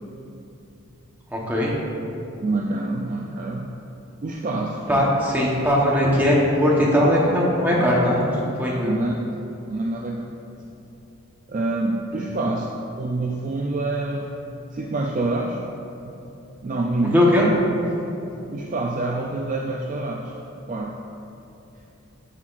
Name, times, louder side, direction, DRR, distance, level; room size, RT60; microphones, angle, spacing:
voice 1, 1.3-1.7 4.9-8.2 8.6-8.9 17.1-17.5, equal, 10° right, -5 dB, 1.0 m, -19 dB
voice 2, 2.4-3.7 4.2-5.1 8.8-9.1 9.5-10.6 11.5-12.7 13.0-14.3 14.7-15.6 16.1-16.2 16.6-17.5 18.4-20.3 20.7-21.0, right 2 dB, 35° right, 0 dB, 0.3 m, -27 dB
9.8 x 5.9 x 2.5 m, 2.8 s
head